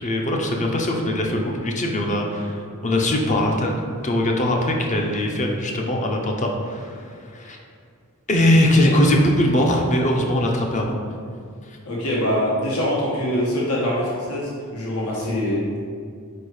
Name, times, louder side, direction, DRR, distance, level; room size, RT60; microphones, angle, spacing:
voice 1, 0.0-3.7 4.0-7.0 7.3-7.6 8.3-10.9, left 1 dB, 35° left, 1 dB, 0.7 m, -21 dB
voice 2, 11.8-15.8, equal, 75° left, -5 dB, 1.3 m, -24 dB
4.6 x 4.4 x 4.9 m, 2.2 s
head